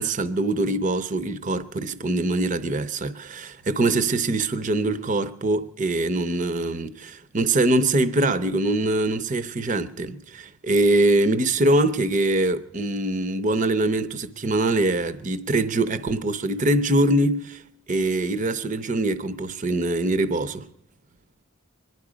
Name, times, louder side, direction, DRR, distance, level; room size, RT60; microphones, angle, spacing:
voice 1, 0.0-17.6 17.9-20.7, right 2 dB, 35° right, 0.7 m, -23 dB
23.5 x 11.0 x 5.0 m
head